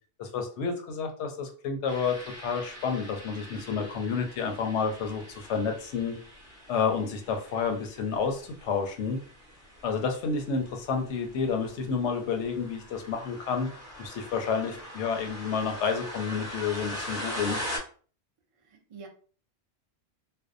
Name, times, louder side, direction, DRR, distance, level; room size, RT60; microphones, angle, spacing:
voice 1, 0.2-2.1 2.4-6.2 6.7-9.2 9.8-13.7 14.0-17.6, left 5 dB, 90° left, 4 dB, 0.9 m, -30 dB
sound 1, 1.9-17.8, left 1 dB, 15° right, 0.7 m, -42 dB
voice 2, 18.6-19.1, right 4 dB, 45° right, 2 dB, 0.4 m, -47 dB
2.5 x 2.0 x 2.5 m, 0.41 s
omnidirectional pair, 1.2 m